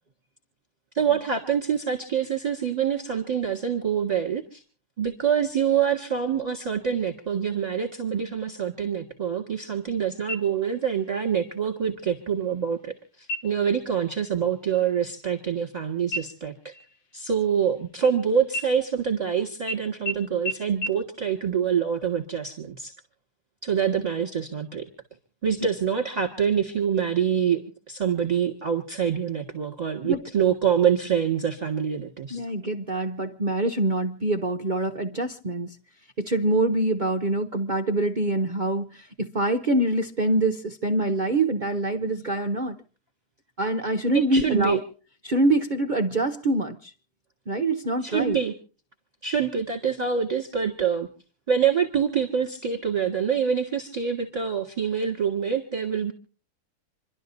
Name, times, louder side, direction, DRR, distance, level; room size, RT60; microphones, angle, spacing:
voice 1, 0.9-4.6 5.0-16.8 17.1-22.9 23.6-24.9 25.4-32.4 44.1-44.8 48.0-48.5 49.2-51.1 51.5-56.1, right 7 dB, 25° right, 1.7 m, -25 dB
sound 1, 10.3-10.9 11.3-11.4 12.0-12.5 13.2-13.7 14.1-14.4 14.7-15.8 16.1-18.1 18.5-19.3 19.7-19.8 20.1-20.2 20.5-20.6 20.8-20.9, equal, 80° left, 1.7 m, -35 dB
voice 2, 32.3-35.8 36.2-42.8 43.6-44.8 45.2-46.9 47.5-48.4, right 2 dB, 45° right, 0.6 m, -25 dB
27.5 x 12.0 x 2.7 m
omnidirectional pair, 1.7 m